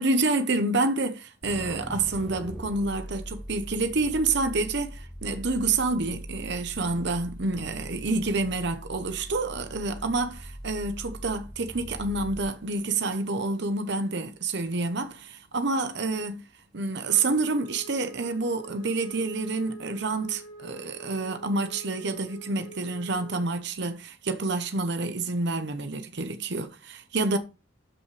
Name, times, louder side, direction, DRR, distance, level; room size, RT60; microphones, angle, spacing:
voice 1, 0.0-16.4 16.7-27.4, right 3 dB, 60° right, 0.9 m, -28 dB
sound 1, 1.4-12.9, equal, ahead, 1.0 m, -41 dB
Wind instrument woodwind instrument, 17.1-23.5, right 2 dB, 75° left, 2.8 m, -46 dB
12.5 x 5.5 x 3.3 m
head